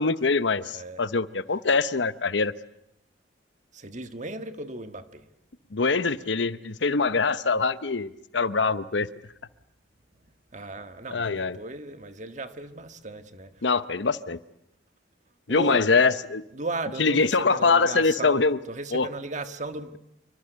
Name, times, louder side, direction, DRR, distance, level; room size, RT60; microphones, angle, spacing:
voice 1, 0.0-2.5 5.7-9.1 11.1-11.6 13.6-14.4 15.5-16.4 17.0-18.6 18.9-19.1, left 4 dB, 75° left, 0.9 m, -23 dB
voice 2, 3.7-5.3 10.5-13.7 15.5-15.9 16.5-20.0, right 2 dB, 40° right, 1.6 m, -36 dB
28.0 x 24.5 x 8.1 m
head